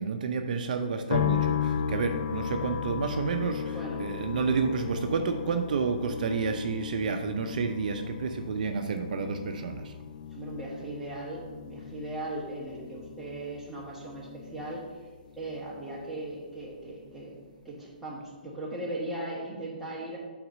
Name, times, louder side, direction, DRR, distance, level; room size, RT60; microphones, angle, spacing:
voice 1, 0.0-9.9, right 5 dB, 60° right, 6 dB, 0.5 m, -30 dB
sound 1, 1.1-16.3 16.6-17.5, left 8 dB, 60° left, 0.4 m, -36 dB
voice 2, 3.6-4.0 10.3-14.8 15.4-17.3 17.6-20.2, right 1 dB, 5° right, -6 dB, 1.5 m, -38 dB
5.9 x 4.0 x 6.2 m, 1.4 s
hypercardioid pair, 150°, 5 cm